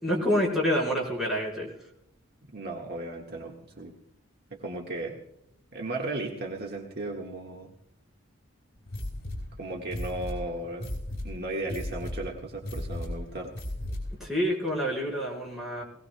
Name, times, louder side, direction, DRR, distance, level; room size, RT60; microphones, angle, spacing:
voice 1, 0.0-1.7 14.2-15.8, equal, ahead, -4 dB, 4.6 m, -27 dB
voice 2, 2.5-3.9 4.5-5.2 5.7-7.7 9.6-13.5, right 2 dB, 50° right, 0 dB, 1.5 m, -35 dB
sound 1, 8.9-14.3, left 1 dB, 50° left, 4.4 m, -36 dB
20.5 x 18.0 x 2.2 m, 0.77 s
head